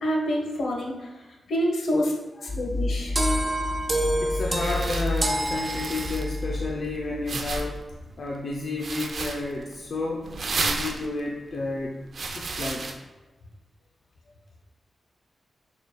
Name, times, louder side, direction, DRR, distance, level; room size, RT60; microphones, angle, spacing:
voice 1, 0.0-2.1 2.5-3.2, equal, 80° left, -2 dB, 1.4 m, -27 dB
sound 1, 2.5-7.8, left 2 dB, 20° left, 0.5 m, -31 dB
sound 2, 3.2-6.4, right 1 dB, 20° right, 0.6 m, -28 dB
voice 2, 4.2-7.8 8.2-11.9 12.3-12.9, left 2 dB, 60° left, -2 dB, 0.7 m, -31 dB
sound 3, 4.2-12.9, right 3 dB, 55° right, 0.7 m, -34 dB
7.0 x 6.4 x 2.4 m, 1.2 s
wide cardioid pair, 110°, 0 cm